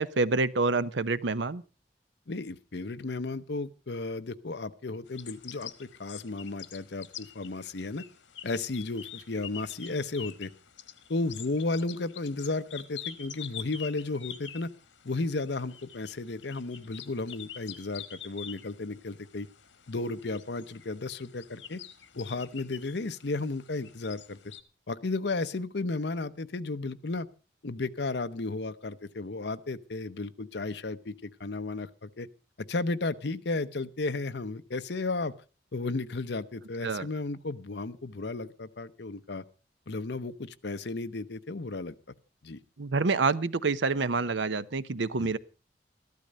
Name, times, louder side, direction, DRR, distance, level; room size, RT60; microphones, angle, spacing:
voice 1, 0.0-1.6 36.8-37.1 42.8-45.4, right 3 dB, 85° right, 0.7 m, -27 dB
voice 2, 2.3-8.0 8.4-10.5 11.1-14.7 15.0-19.5 19.9-21.8 22.1-24.4 24.9-27.3 27.6-32.3 32.7-35.3 35.7-39.4 39.9-41.9 42.4-42.6 45.2-45.3, left 3 dB, 65° left, 0.8 m, -34 dB
sound 1, 5.1-24.6, left 10 dB, 85° left, 1.4 m, -46 dB
13.5 x 12.0 x 5.3 m
head